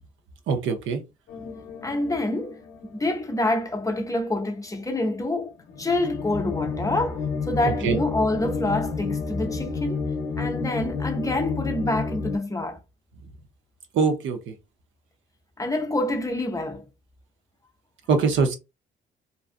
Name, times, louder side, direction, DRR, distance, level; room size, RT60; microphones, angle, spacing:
voice 1, 0.5-1.0 7.6-8.0 13.9-14.5 18.1-18.5, right 5 dB, 75° right, 0.7 m, -23 dB
sound 1, 1.3-3.7 3.9-4.1 4.7-4.8 5.7-12.4, left 4 dB, 60° left, 0.6 m, -31 dB
voice 2, 1.8-2.6 2.8-10.1 10.4-12.8 15.6-16.9, left 2 dB, 15° left, 0.5 m, -27 dB
2.6 x 2.3 x 2.5 m
cardioid pair, 90°, 20 cm